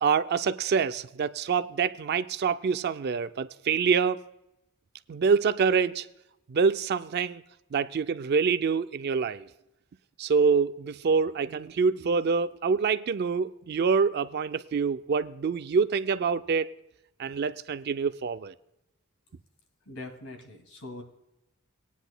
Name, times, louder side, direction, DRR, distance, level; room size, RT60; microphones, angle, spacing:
voice 1, 0.0-4.2 5.1-6.1 6.5-7.4 7.7-9.5 10.2-16.7 17.2-18.5, right 5 dB, 50° right, 0.4 m, -26 dB
voice 2, 19.9-21.0, left 2 dB, 75° left, 2.3 m, -42 dB
19.5 x 9.9 x 2.2 m
head